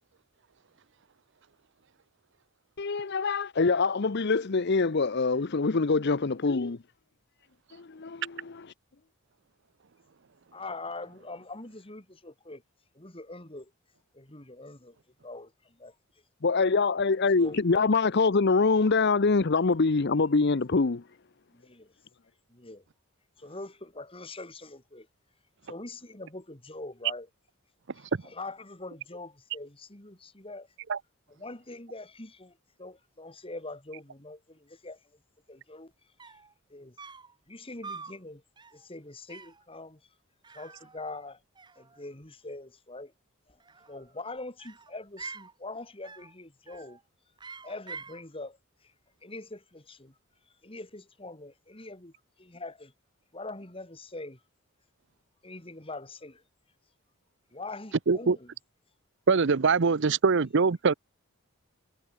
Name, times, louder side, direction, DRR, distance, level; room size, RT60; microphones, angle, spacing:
voice 1, 2.8-6.8 7.7-8.7 16.4-21.0, left 4 dB, 50° left, 0.7 m, -24 dB
voice 2, 10.5-12.6 12.9-13.7 14.1-15.0 15.2-15.9 17.4-17.8 21.5-21.9 22.5-22.8 23.4-25.1 25.6-27.3 27.9-30.7 31.3-35.0 35.5-35.9 36.2-36.4 36.7-37.0 37.5-38.4 38.7-40.0 40.5-41.4 41.8-43.1 43.5-43.6 43.9-47.0 47.6-48.9 49.2-50.1 50.6-52.9 53.3-54.4 55.4-56.4 57.5-58.5, left 2 dB, 25° left, 2.8 m, -43 dB
sound 1, 35.9-36.0 36.2-36.5 37.0-37.4 37.8-38.2 38.6-38.9 39.3-39.6 40.4-41.3 41.6-42.3 43.5-44.1 44.6-45.5 46.0-46.4 46.7-47.0 47.4-48.2, right 4 dB, 20° right, 1.3 m, -46 dB
voice 3, 59.3-60.9, right 4 dB, 55° right, 0.6 m, -23 dB
head